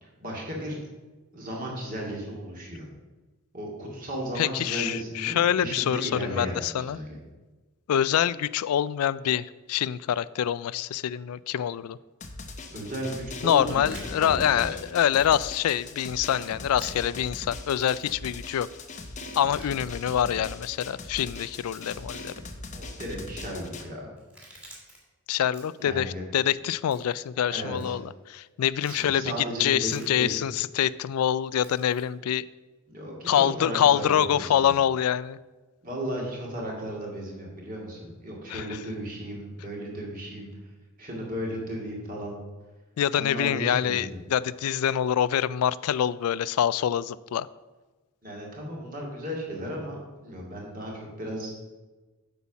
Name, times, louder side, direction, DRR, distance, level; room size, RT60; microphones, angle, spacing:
voice 1, 0.0-0.8 1.3-2.9 3.5-7.2 12.7-14.8 22.7-24.1 25.8-26.2 27.5-28.0 28.9-30.4 32.9-34.7 35.8-40.5 41.0-42.3 43.1-44.2 48.2-51.5, equal, 40° right, -2 dB, 2.2 m, -35 dB
voice 2, 4.4-7.0 7.9-12.0 13.4-18.7 19.4-22.3 25.3-32.4 33.3-35.4 38.5-38.8 43.0-47.5, left 9 dB, 80° left, 19 dB, 0.3 m, -25 dB
Drum, 12.2-23.8, left 2 dB, 30° left, 0.7 m, -40 dB
sound 1, 13.4-14.1 15.2-15.4 15.6-15.7 16.8-16.9 17.7-18.1 19.3-20.2 21.1-22.0 23.2-23.5 24.2-25.0 25.4-25.9 26.9-27.2 27.8-27.9 28.8-29.0 29.9-30.1 31.6-32.0, right 1 dB, 5° right, 1.9 m, -49 dB
8.2 x 5.6 x 6.0 m, 1.2 s
head